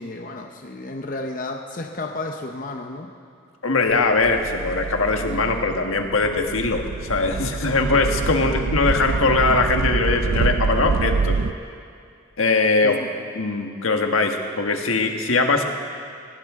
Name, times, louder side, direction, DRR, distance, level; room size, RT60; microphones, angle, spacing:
voice 1, 0.0-3.1 12.8-13.1, left 2 dB, 40° left, 3 dB, 0.8 m, -32 dB
voice 2, 3.6-11.4 12.4-13.0 13.3-15.6, left 3 dB, 80° left, 4 dB, 1.4 m, -21 dB
sound 1, 3.9-11.5, right 4 dB, 75° right, 0.5 m, -26 dB
20.5 x 17.0 x 3.7 m, 2.3 s
head